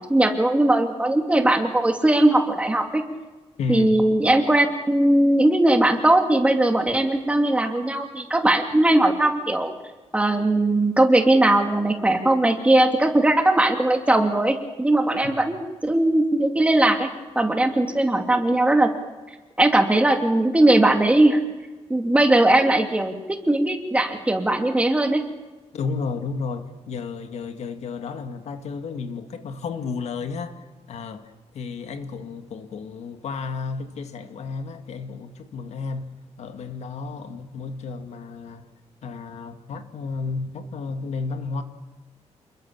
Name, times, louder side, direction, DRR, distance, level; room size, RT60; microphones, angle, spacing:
voice 1, 0.0-3.0 3.7-9.7 10.1-17.1 17.3-18.9 19.6-21.4 21.9-25.2, right 1 dB, 10° right, 2.7 m, -19 dB
voice 2, 3.6-4.0 15.2-15.6 25.7-38.7 39.0-41.6, left 4 dB, 70° left, 2.0 m, -32 dB
29.0 x 21.5 x 7.3 m
wide cardioid pair, 150°, 12 cm